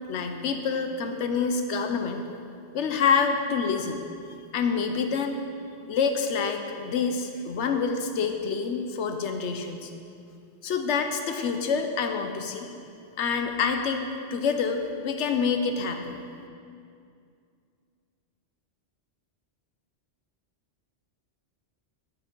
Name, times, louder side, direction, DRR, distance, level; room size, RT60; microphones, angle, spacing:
voice 1, 0.1-2.2 2.7-4.0 4.5-5.4 5.9-9.9 10.6-12.8 13.2-16.2, left 5 dB, 80° left, 6 dB, 1.0 m, -27 dB
13.5 x 6.4 x 3.8 m, 2.4 s
omnidirectional pair, 1.2 m